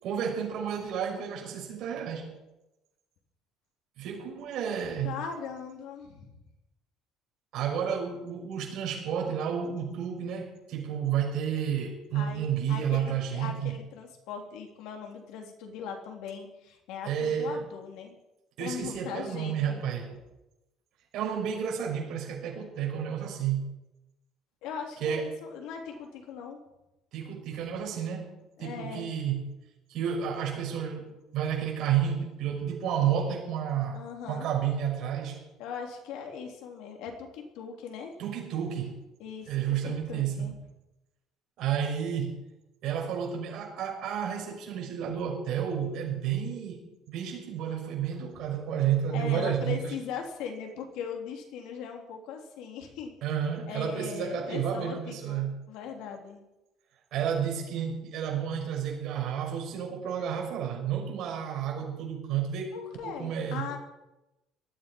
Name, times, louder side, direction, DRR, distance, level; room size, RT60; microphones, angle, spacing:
voice 1, 0.0-2.3 4.0-5.2 7.5-13.7 17.0-17.6 18.6-20.2 21.1-23.7 25.0-25.3 27.1-28.3 28.6-29.5 29.9-34.0 34.3-35.4 38.2-39.0 39.5-40.5 41.6-42.4 42.8-46.8 47.1-49.9 53.2-55.6 57.1-62.7 63.0-63.7, right 8 dB, 55° right, 0 dB, 6.2 m, -31 dB
voice 2, 5.0-6.3 12.1-18.1 18.6-19.8 24.6-26.6 28.6-29.1 33.9-34.5 35.6-38.1 39.2-40.6 49.1-53.1 53.7-56.4 62.7-63.8, left 6 dB, 70° left, 3 dB, 3.5 m, -39 dB
19.0 x 13.5 x 5.5 m, 0.96 s
cardioid pair, 155°, 0 cm